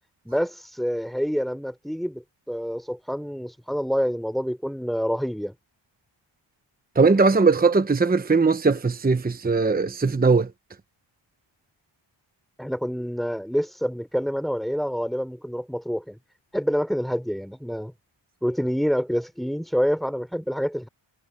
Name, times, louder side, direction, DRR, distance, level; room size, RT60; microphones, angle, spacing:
voice 1, 0.3-5.5 12.6-16.2 16.5-17.9 18.4-20.9, equal, ahead, 3.9 m, -27 dB
voice 2, 7.0-10.5, right 4 dB, 20° right, 0.9 m, -19 dB
wide cardioid pair, 105°, 48 cm